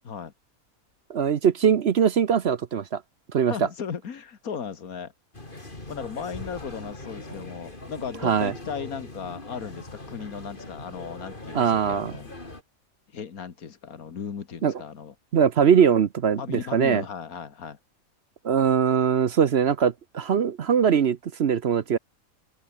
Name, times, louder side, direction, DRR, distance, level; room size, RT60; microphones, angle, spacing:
voice 1, 1.1-3.0 3.3-3.5 8.2-8.5 11.5-12.1 14.6-14.7 15.3-17.0 18.4-22.0, right 7 dB, 55° right, 0.9 m, -21 dB
voice 2, 3.5-5.1 5.5-12.3 13.1-15.2 16.4-17.8, left 7 dB, 80° left, 2.0 m, -36 dB
sound 1, 5.3-12.6, left 2 dB, 35° left, 3.9 m, -41 dB
omnidirectional pair, 1.5 m